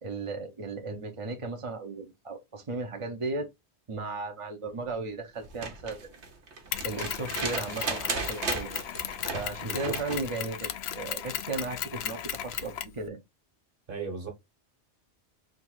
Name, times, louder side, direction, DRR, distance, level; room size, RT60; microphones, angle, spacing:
voice 1, 0.0-3.5 3.9-6.1 6.8-8.7 9.3-13.2, right 3 dB, 35° right, 0.7 m, -35 dB
sound 1, 5.4-10.3 11.9-12.0, right 4 dB, 75° right, 1.3 m, -35 dB
Mechanisms, 6.7-13.0, left 10 dB, 70° left, 0.8 m, -36 dB
voice 2, 9.6-9.9 13.9-14.3, right 5 dB, 50° right, 1.5 m, -36 dB
3.8 x 2.5 x 4.6 m
omnidirectional pair, 1.1 m